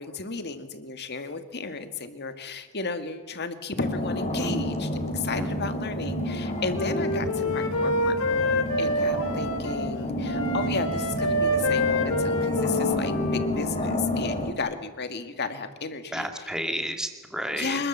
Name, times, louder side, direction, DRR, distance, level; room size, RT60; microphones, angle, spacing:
voice 1, 0.0-16.5 17.5-17.9, left 4 dB, 50° left, 8 dB, 2.0 m, -34 dB
sound 1, 3.8-14.5, left 1 dB, 30° left, 3.1 m, -30 dB
voice 2, 4.4-4.7 5.4-5.5 16.1-17.8, equal, 5° right, 5 dB, 2.4 m, -31 dB
Wind instrument woodwind instrument, 6.3-9.9 10.2-13.9, left 1 dB, 75° left, 3.0 m, -27 dB
25.5 x 21.5 x 7.4 m, 1.2 s
head